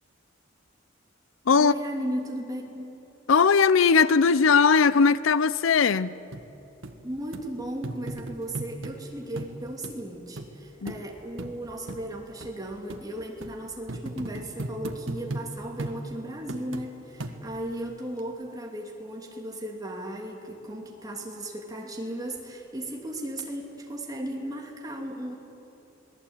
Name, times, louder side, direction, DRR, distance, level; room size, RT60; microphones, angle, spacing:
voice 1, 1.6-2.9 7.0-25.3, right 1 dB, 20° right, 2.9 m, -36 dB
voice 2, 3.3-6.2 10.8-10.9, left 5 dB, 75° left, 0.6 m, -19 dB
sound 1, 6.3-6.4 6.8-6.9 7.3-7.5 7.8-9.0 9.4-9.5 9.8-9.9 10.4-10.5 10.9-11.0 11.4-11.5 11.9-12.0 12.4-12.5 12.9-13.0 13.4-13.5 13.9-15.5 15.8-16.0 16.5-16.9 17.2-17.7 18.2-18.3, right 2 dB, 75° right, 1.8 m, -36 dB
27.5 x 19.5 x 9.0 m
head